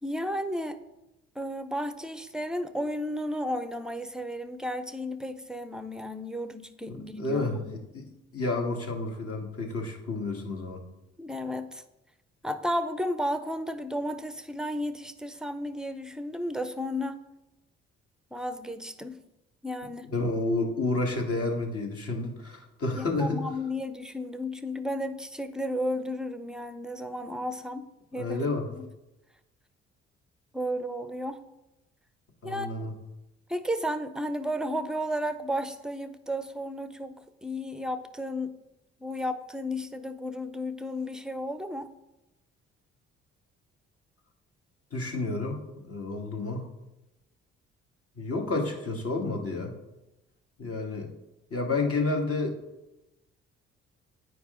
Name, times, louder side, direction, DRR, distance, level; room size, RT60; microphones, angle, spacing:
voice 1, 0.0-0.8 1.4-7.7 11.2-11.8 12.4-17.2 18.3-19.2 19.6-20.1 23.0-28.4 28.7-28.8 30.5-31.4 32.4-32.9 33.5-38.6 39.0-41.9, equal, ahead, 11 dB, 0.7 m, -33 dB
voice 2, 7.2-7.6 7.9-8.1 8.3-10.8 20.1-23.4 28.1-28.7 32.4-32.9 44.9-45.6 45.9-46.7 48.2-49.7 50.6-51.1 51.5-52.5, left 2 dB, 45° left, 1 dB, 1.8 m, -30 dB
9.3 x 4.7 x 3.8 m, 0.94 s
hypercardioid pair, 45°, 34 cm